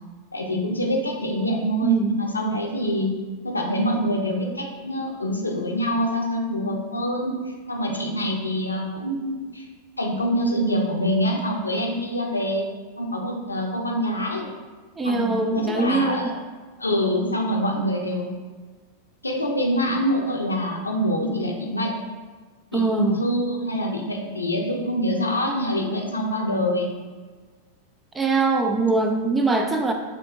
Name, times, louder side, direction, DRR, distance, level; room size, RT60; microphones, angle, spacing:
voice 1, 0.3-3.1 3.4-9.7 10.0-12.7 13.0-14.5 15.0-16.3 16.8-18.3 19.2-21.9 22.7-26.9, equal, 80° left, 0 dB, 0.7 m, -25 dB
voice 2, 1.8-2.2 15.0-16.4 22.7-23.2 28.1-29.9, right 3 dB, 15° right, 4 dB, 0.5 m, -22 dB
5.8 x 3.5 x 2.5 m, 1.4 s
figure-of-eight pair, 90°, 0 cm